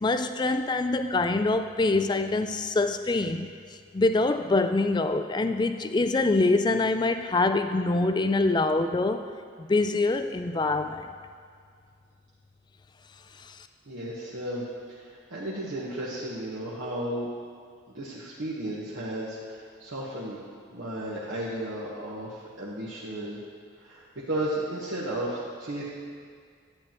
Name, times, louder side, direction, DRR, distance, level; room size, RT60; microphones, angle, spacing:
voice 1, 0.0-3.5 3.9-9.3 9.6-11.1 13.4-13.7, left 2 dB, 20° left, 9 dB, 0.3 m, -25 dB
voice 2, 13.8-17.3 17.9-20.4 20.7-23.4 23.8-25.8, right 1 dB, 80° right, -7 dB, 1.3 m, -34 dB
12.0 x 9.1 x 3.0 m, 2.1 s
head